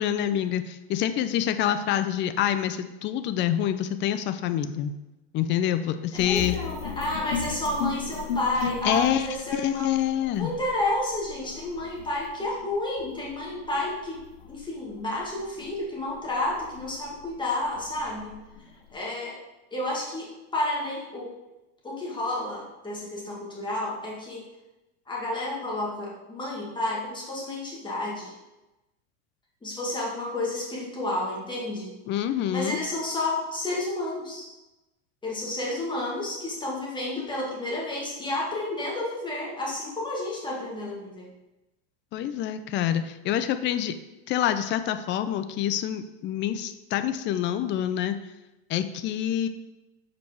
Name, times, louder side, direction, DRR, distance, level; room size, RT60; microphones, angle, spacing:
voice 1, 0.0-4.9 5.3-6.6 8.8-9.3 9.5-10.5 32.1-32.8 42.1-43.9 44.3-48.2 48.7-49.5, left 10 dB, 35° left, 10 dB, 0.5 m, -26 dB
sound 1, 6.2-19.0, left 6 dB, 90° left, 1.0 m, -37 dB
voice 2, 6.2-9.9 10.4-14.2 14.5-18.3 18.9-19.4 19.7-21.3 21.8-24.4 25.1-28.3 29.6-31.9 32.5-34.5 35.2-41.3, left 1 dB, 15° left, -4 dB, 1.9 m, -31 dB
7.0 x 5.1 x 4.6 m, 1.0 s
supercardioid pair, 130°, 34 cm